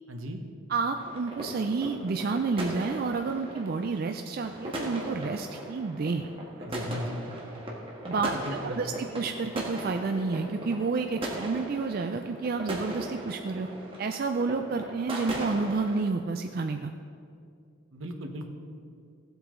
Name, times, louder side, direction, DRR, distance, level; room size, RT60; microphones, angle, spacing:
voice 1, 0.1-0.4 6.6-7.2 8.1-8.8 17.9-18.5, equal, 80° right, 4 dB, 1.1 m, -37 dB
voice 2, 0.7-6.3 8.1-13.7 14.0-16.9, right 4 dB, 45° right, 6 dB, 0.4 m, -30 dB
sound 1, 0.9-16.0, right 1 dB, 25° right, 1.5 m, -38 dB
16.0 x 8.0 x 3.8 m, 2.4 s
head